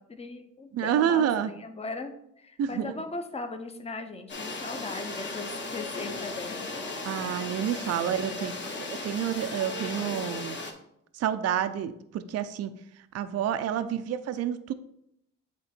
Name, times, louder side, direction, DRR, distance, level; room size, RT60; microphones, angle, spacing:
voice 1, 0.2-6.7 8.0-8.8 13.8-14.0, left 3 dB, 20° left, 7 dB, 0.8 m, -39 dB
voice 2, 0.7-1.5 2.6-2.9 7.1-8.5 9.0-10.6 11.1-12.7 13.1-14.7, right 9 dB, 55° right, 11 dB, 0.5 m, -28 dB
sound 1, 4.3-10.7, left 3 dB, 40° left, 1.3 m, -36 dB
8.0 x 3.0 x 4.4 m, 0.76 s
cardioid pair, 90°, 30 cm